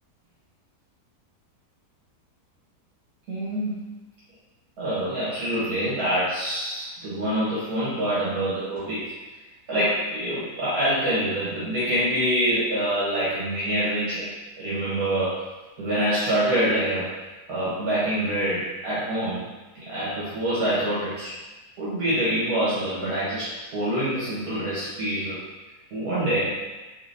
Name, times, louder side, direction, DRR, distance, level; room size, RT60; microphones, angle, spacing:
voice 1, 3.3-3.9 4.8-9.1 9.7-14.3 14.6-15.4 15.8-17.1 17.5-19.5 19.7-21.3 21.8-25.4 25.9-26.6, right 1 dB, 70° right, -10 dB, 1.5 m, -26 dB
3.6 x 3.1 x 2.6 m, 1.2 s
omnidirectional pair, 1.7 m